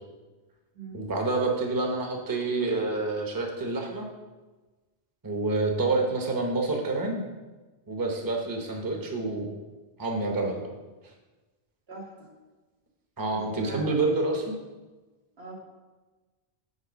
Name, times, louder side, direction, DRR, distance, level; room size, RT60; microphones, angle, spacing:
voice 1, 0.9-4.1 5.2-7.2 7.9-9.5 10.0-10.6 13.2-14.6, right 3 dB, 20° right, 1 dB, 0.9 m, -28 dB
voice 2, 11.9-12.3 13.3-14.0 15.4-15.6, right 3 dB, 75° right, -4 dB, 2.2 m, -42 dB
6.7 x 4.6 x 6.0 m, 1.2 s
omnidirectional pair, 1.0 m